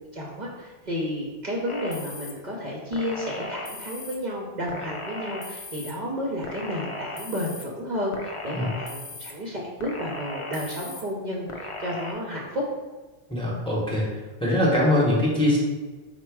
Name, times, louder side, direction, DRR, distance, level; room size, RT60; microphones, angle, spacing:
voice 1, 0.1-12.7, equal, 50° right, -3 dB, 0.7 m, -31 dB
sound 1, 1.7-2.3 2.9-4.2 4.7-5.9 6.4-7.6 8.1-9.3 9.8-11.0 11.5-12.1, left 2 dB, 45° left, 0.4 m, -37 dB
voice 2, 13.3-14.1 14.4-15.6, left 1 dB, 5° left, -5 dB, 0.9 m, -22 dB
4.4 x 2.2 x 4.5 m, 1.3 s
omnidirectional pair, 1.0 m